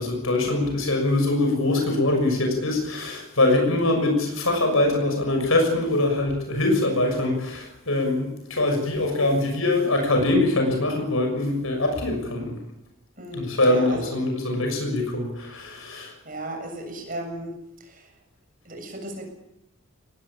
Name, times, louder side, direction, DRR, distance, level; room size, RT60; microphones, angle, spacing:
voice 1, 0.0-12.6 13.3-16.1, left 2 dB, 80° left, 3 dB, 6.7 m, -23 dB
voice 2, 13.2-14.1 16.2-18.1 18.7-19.3, right 1 dB, 40° right, 3 dB, 7.4 m, -35 dB
22.5 x 20.0 x 8.8 m, 0.88 s
head